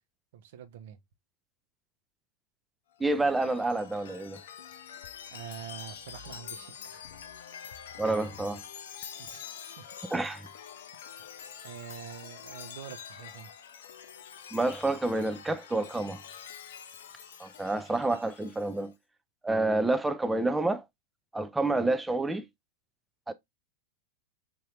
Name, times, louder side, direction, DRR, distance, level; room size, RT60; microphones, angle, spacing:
voice 1, 0.3-1.0 5.3-7.1 9.2-9.4 9.8-9.9 11.6-13.5, right 9 dB, 55° right, 0.6 m, -45 dB
Chime, 3.0-18.9, left 8 dB, 60° left, 0.5 m, -46 dB
voice 2, 3.0-4.4 8.0-8.6 10.1-10.5 14.5-16.2 17.4-18.9 19.4-20.8 21.3-22.4 23.3-23.4, right 2 dB, 5° right, 0.4 m, -28 dB
3.6 x 2.8 x 3.0 m
figure-of-eight pair, 90°, 0 cm